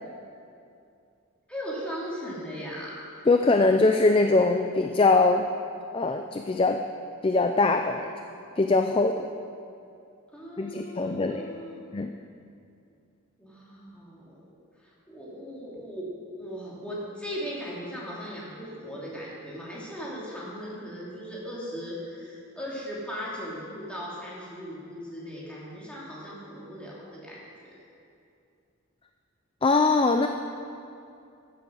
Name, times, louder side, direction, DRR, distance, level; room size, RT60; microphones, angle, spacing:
voice 1, 1.5-3.1 10.3-11.8 13.4-14.5 15.1-16.1 16.3-27.8, equal, 5° left, -6 dB, 2.7 m, -38 dB
voice 2, 3.3-5.5 5.9-6.8 7.2-8.1 8.6-9.2 10.6-11.6 11.9-12.1 29.6-30.3, left 3 dB, 25° left, 5 dB, 0.4 m, -22 dB
14.5 x 7.9 x 6.3 m, 2.5 s
head